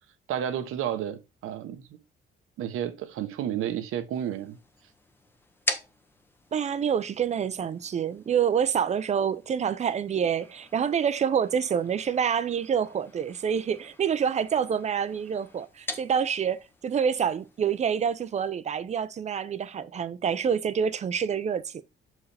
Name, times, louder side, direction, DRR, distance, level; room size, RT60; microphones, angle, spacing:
voice 1, 0.3-2.0 2.6-4.6, right 10 dB, 80° right, 1.0 m, -31 dB
sound 1, 4.1-18.5, left 2 dB, 10° left, 0.7 m, -43 dB
voice 2, 6.5-21.8, right 7 dB, 35° right, 0.5 m, -27 dB
7.0 x 4.7 x 3.3 m
cardioid pair, 155°, 21 cm